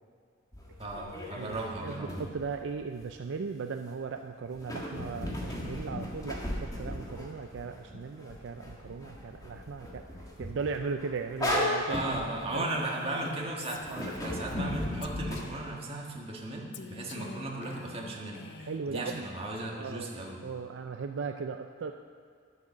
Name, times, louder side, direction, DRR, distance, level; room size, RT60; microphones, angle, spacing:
sound 1, 0.5-3.1 4.5-13.3 13.8-15.4, left 1 dB, 20° left, 1.6 m, -36 dB
voice 1, 0.8-2.1 11.9-20.4, right 2 dB, 30° right, -1 dB, 1.6 m, -36 dB
voice 2, 1.4-10.1 10.4-12.0 12.5-12.7 13.9-14.0 18.7-19.2 19.7-20.1 20.4-21.9, right 5 dB, 65° right, 6 dB, 0.4 m, -37 dB
Female speech woman speaking, 12.5-14.8 15.0-15.8 16.7-18.9, left 4 dB, 60° left, 0.6 m, -47 dB
11.0 x 7.8 x 6.2 m, 2.2 s
head